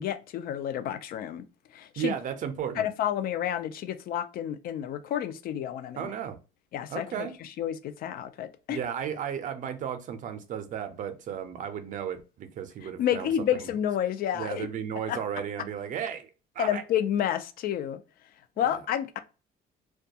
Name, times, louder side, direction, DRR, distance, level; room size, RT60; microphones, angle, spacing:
voice 1, 0.0-1.4 1.7-2.1 2.8-6.1 6.7-8.8 13.0-14.7 15.1-15.2 16.6-18.0 18.6-19.2, left 10 dB, 60° left, 0.4 m, -30 dB
voice 2, 2.0-2.9 6.0-6.4 6.9-7.4 8.7-13.7 14.3-16.3 16.5-16.8, right 8 dB, 50° right, 0.5 m, -34 dB
2.3 x 2.2 x 2.7 m
cardioid pair, 110°, 17 cm